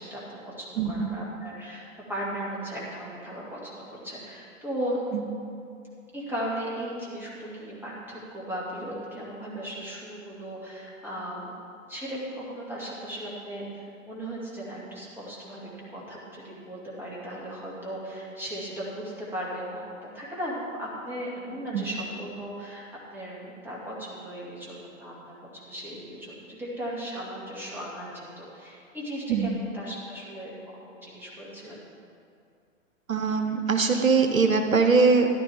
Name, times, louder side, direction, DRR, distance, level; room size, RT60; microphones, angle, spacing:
voice 1, 0.0-1.8 2.1-5.0 6.1-11.5 11.9-22.8 23.1-31.8, equal, 5° right, -6 dB, 2.4 m, -37 dB
voice 2, 0.8-1.1 5.1-5.2 21.7-21.8 29.3-29.6 33.1-35.3, right 4 dB, 80° right, 5 dB, 1.0 m, -22 dB
14.0 x 11.0 x 3.6 m, 2.5 s
figure-of-eight pair, 115°, 40 cm